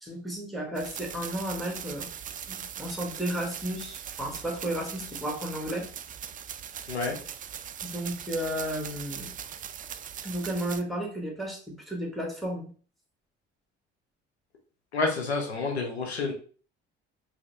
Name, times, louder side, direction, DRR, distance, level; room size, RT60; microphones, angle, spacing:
voice 1, 0.0-2.1 2.5-5.9 7.8-9.4 10.2-12.7, right 1 dB, ahead, 0 dB, 1.8 m, -33 dB
sound 1, 0.7-10.8, right 8 dB, 25° right, 0.4 m, -40 dB
voice 2, 14.9-16.3, left 3 dB, 90° left, 1 dB, 0.7 m, -29 dB
4.7 x 2.9 x 3.2 m, 0.41 s
figure-of-eight pair, 50°, 32 cm